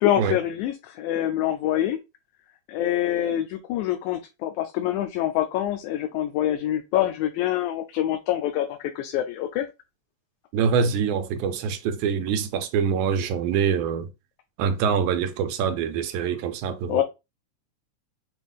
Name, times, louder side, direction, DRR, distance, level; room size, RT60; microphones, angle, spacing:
voice 1, 0.0-2.0 2.7-9.7 16.9-17.0, left 12 dB, 85° left, 2.0 m, -25 dB
voice 2, 10.5-14.1 14.6-17.0, right 6 dB, 90° right, 2.0 m, -25 dB
5.9 x 2.5 x 3.5 m
omnidirectional pair, 3.4 m